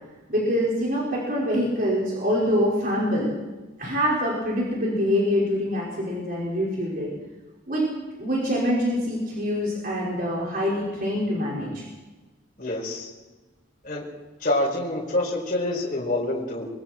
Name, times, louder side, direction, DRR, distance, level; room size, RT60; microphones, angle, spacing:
voice 1, 0.3-3.3 3.8-7.1 7.7-7.9 8.2-11.8, equal, 45° right, -5 dB, 5.5 m, -25 dB
voice 2, 12.6-13.1 13.8-14.0 14.4-16.7, left 1 dB, 40° left, -4 dB, 5.1 m, -26 dB
25.5 x 22.5 x 4.6 m, 1.2 s
head